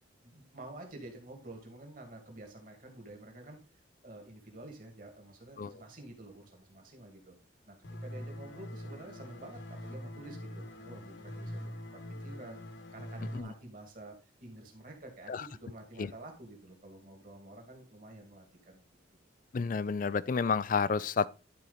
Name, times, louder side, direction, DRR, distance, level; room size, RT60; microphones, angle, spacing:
voice 1, 0.2-7.4 7.7-12.6 12.9-14.2 14.4-18.8, right 1 dB, 45° right, 2.2 m, -49 dB
sound 1, 7.8-13.4, left 1 dB, 60° left, 1.4 m, -43 dB
voice 2, 19.5-21.3, left 5 dB, 40° left, 0.3 m, -30 dB
11.5 x 4.5 x 3.9 m
head